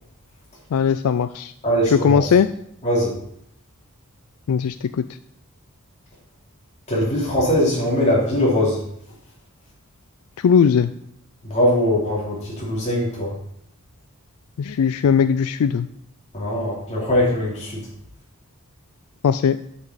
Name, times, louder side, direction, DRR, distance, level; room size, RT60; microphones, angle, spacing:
voice 1, 0.7-1.5 1.9-2.5 4.5-5.0 10.4-10.9 14.6-15.9 19.2-19.6, left 7 dB, 75° left, 12 dB, 0.3 m, -18 dB
voice 2, 1.6-2.2 2.8-3.2 6.9-8.8 11.4-13.3 16.3-17.8, left 1 dB, 30° left, -5 dB, 3.5 m, -21 dB
7.9 x 7.3 x 4.1 m, 0.71 s
head